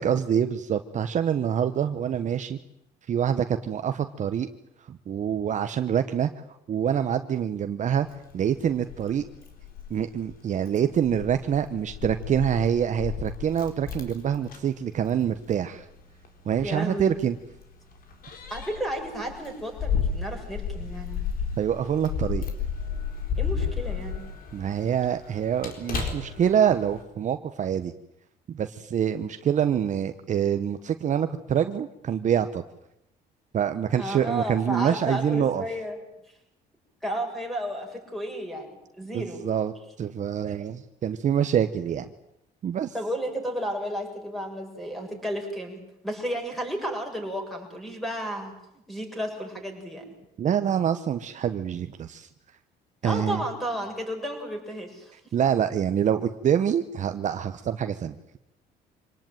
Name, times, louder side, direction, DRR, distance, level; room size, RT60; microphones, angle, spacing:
voice 1, 0.0-2.6 3.1-4.5 4.9-6.3 6.7-8.1 8.3-9.2 9.9-15.9 16.4-17.4 21.6-22.4 24.5-27.9 28.5-32.6 33.5-35.6 39.1-39.7 40.0-42.1 42.6-42.9 50.4-52.3 53.0-53.4 55.3-58.4, right 9 dB, 45° right, 9 dB, 1.1 m, -26 dB
Keys jangling, 8.0-27.0, left 6 dB, 60° left, 4.5 m, -34 dB
voice 2, 16.6-17.1 18.5-21.2 23.4-24.3 34.0-36.0 37.0-39.4 42.9-48.5 48.9-50.1 53.0-55.1, equal, ahead, 2 dB, 7.2 m, -32 dB
25.5 x 18.5 x 9.2 m, 0.84 s
cardioid pair, 110°, 17 cm